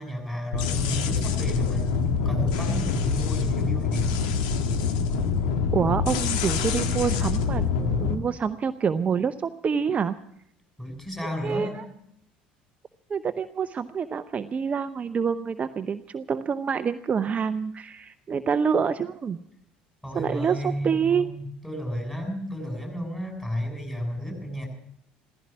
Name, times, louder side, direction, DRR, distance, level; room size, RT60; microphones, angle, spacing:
voice 1, 0.0-4.1 10.8-11.8 20.0-24.7, equal, 10° left, 2 dB, 7.2 m, -32 dB
sound 1, 0.5-8.1, left 5 dB, 70° left, 1.5 m, -25 dB
voice 2, 5.7-10.1 11.4-11.8 13.1-19.4 20.1-21.3, right 6 dB, 30° right, 10 dB, 0.7 m, -27 dB
15.5 x 15.0 x 6.1 m, 0.74 s
figure-of-eight pair, 65°, 5 cm